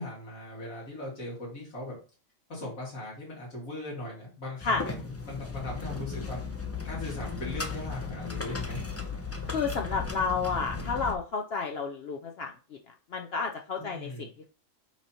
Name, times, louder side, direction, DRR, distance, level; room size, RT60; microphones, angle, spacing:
voice 1, 0.0-1.9 2.5-6.5 6.8-8.8 13.8-14.3, left 1 dB, 80° left, -5 dB, 2.7 m, -39 dB
sound 1, 4.6-11.1, left 4 dB, 20° left, 0.4 m, -36 dB
voice 2, 9.5-12.5 13.1-14.5, left 4 dB, 60° left, 3 dB, 0.7 m, -31 dB
5.9 x 2.9 x 5.6 m, 0.37 s
omnidirectional pair, 1.4 m